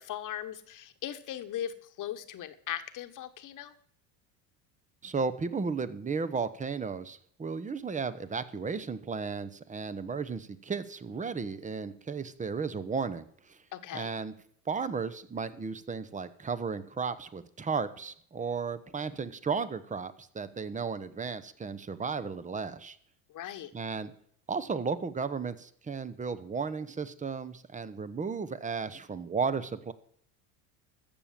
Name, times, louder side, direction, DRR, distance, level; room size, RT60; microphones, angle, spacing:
voice 1, 0.0-3.7 13.7-14.1 23.3-23.7, left 11 dB, 45° left, 10 dB, 1.3 m, -39 dB
voice 2, 5.0-13.6 13.9-14.3 14.7-23.0 23.7-24.1 24.5-29.9, right 5 dB, 15° right, 14 dB, 0.9 m, -34 dB
14.0 x 7.0 x 7.5 m, 0.63 s
supercardioid pair, 105°, 45 cm